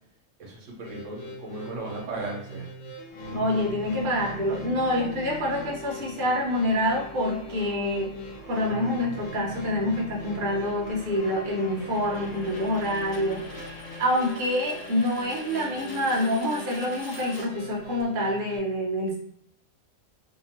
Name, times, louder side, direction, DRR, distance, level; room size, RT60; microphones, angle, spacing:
voice 1, 0.4-2.7, right 2 dB, 70° right, -1 dB, 1.1 m, -36 dB
sound 1, 0.8-18.6, left 3 dB, 75° left, 1.1 m, -42 dB
sound 2, 3.1-16.4, right 1 dB, 40° left, 0.5 m, -43 dB
voice 2, 3.3-8.1 8.5-13.7 14.0-19.2, left 1 dB, 50° right, -2 dB, 0.8 m, -27 dB
sound 3, 7.5-18.0, left 2 dB, 60° left, 1.0 m, -45 dB
2.7 x 2.3 x 2.9 m, 0.69 s
omnidirectional pair, 1.3 m